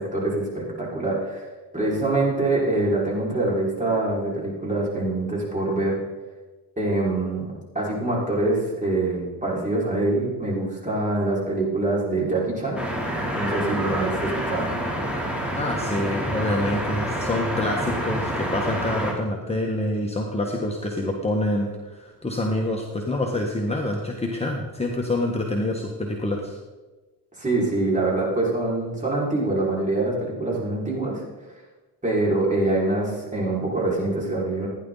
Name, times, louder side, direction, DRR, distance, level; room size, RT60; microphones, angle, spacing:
voice 1, 0.0-1.4 1.7-6.0 6.8-7.4 7.7-12.8 13.3-14.7 27.4-31.2 32.0-34.7, right 2 dB, 20° right, -4 dB, 5.4 m, -24 dB
sound 1, 12.8-19.1, equal, 5° right, 3.3 m, -28 dB
voice 2, 15.5-26.6, left 1 dB, 15° left, 0 dB, 1.5 m, -26 dB
16.0 x 10.5 x 4.1 m, 1.2 s
cardioid pair, 100°, 39 cm